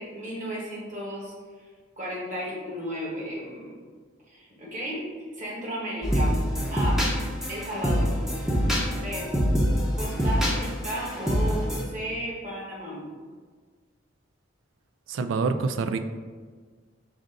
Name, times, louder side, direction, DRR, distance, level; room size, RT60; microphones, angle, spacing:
voice 1, 0.0-1.3 2.0-3.8 4.3-5.1 5.3-7.0 7.5-8.1 8.9-9.3 9.9-13.1, equal, 40° right, -5 dB, 1.3 m, -34 dB
sound 1, 6.0-11.8, equal, ahead, 0.6 m, -25 dB
voice 2, 15.1-16.0, right 4 dB, 75° right, 10 dB, 0.3 m, -26 dB
5.0 x 2.6 x 3.7 m, 1.5 s
head